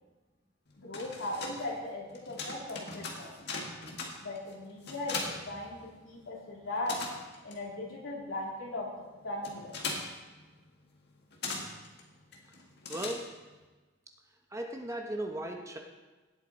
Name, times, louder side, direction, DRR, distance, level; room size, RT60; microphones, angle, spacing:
sound 1, 0.7-6.3 6.5-13.6, left 3 dB, 55° left, 1.8 m, -41 dB
voice 1, 0.8-3.4 4.2-7.0 7.4-8.9 9.2-9.7, left 2 dB, 75° left, -3 dB, 3.0 m, -38 dB
voice 2, 12.9-13.3 14.5-15.8, right 1 dB, 15° right, 3 dB, 0.9 m, -36 dB
17.0 x 8.2 x 4.1 m, 1.2 s
head